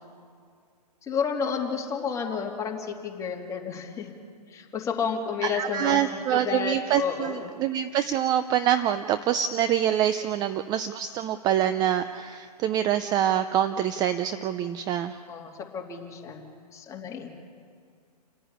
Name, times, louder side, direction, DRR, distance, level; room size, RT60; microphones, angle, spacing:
voice 1, 1.0-4.1 4.5-7.5 15.3-16.5 16.7-17.3, left 6 dB, 15° left, -1 dB, 3.0 m, -31 dB
voice 2, 5.4-15.2, right 10 dB, 20° right, 11 dB, 0.5 m, -25 dB
29.5 x 10.0 x 9.9 m, 2.2 s
hypercardioid pair, 140°, 21 cm